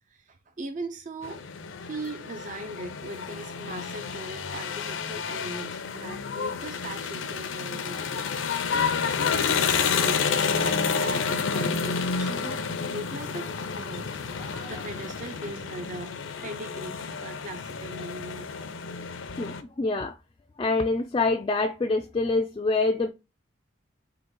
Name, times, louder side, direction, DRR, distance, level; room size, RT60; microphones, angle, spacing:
voice 1, 0.1-1.4 1.8-8.0 8.7-16.1 16.4-18.5, right 2 dB, 40° right, 0.4 m, -39 dB
sound 1, 1.2-19.6, left 5 dB, 85° left, 0.5 m, -30 dB
sound 2, 14.2-15.8, right 1 dB, 60° right, 1.8 m, -48 dB
voice 2, 19.4-20.1 20.6-23.1, left 3 dB, 25° left, 0.3 m, -25 dB
3.8 x 2.8 x 3.7 m
head